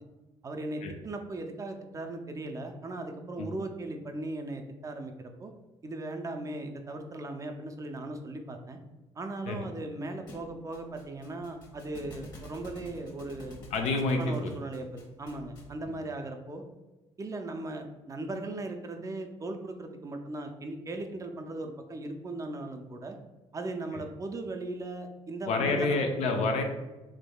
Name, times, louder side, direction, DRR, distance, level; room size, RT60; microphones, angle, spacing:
voice 1, 0.4-5.5 5.8-8.8 9.2-13.6 14.2-16.6 17.2-23.2 23.5-26.0, right 2 dB, 30° right, 5 dB, 0.4 m, -38 dB
Thump thud, 10.3-15.8, left 1 dB, 35° left, 1.2 m, -50 dB
voice 2, 13.7-14.5 15.9-16.0 25.5-26.6, left 3 dB, 75° left, 3 dB, 0.6 m, -28 dB
3.5 x 3.1 x 2.2 m, 1.1 s
cardioid pair, 90°, 11 cm